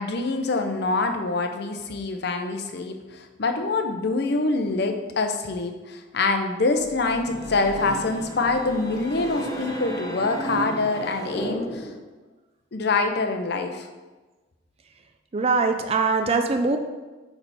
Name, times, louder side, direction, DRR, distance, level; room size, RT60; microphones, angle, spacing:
voice 1, 0.0-11.9 12.7-13.9, left 3 dB, 55° left, 5 dB, 0.7 m, -25 dB
sound 1, 6.8-12.1, right 1 dB, 20° left, 0.8 m, -34 dB
voice 2, 15.3-16.8, right 4 dB, 30° right, 5 dB, 0.4 m, -22 dB
8.5 x 3.5 x 4.1 m, 1.2 s
head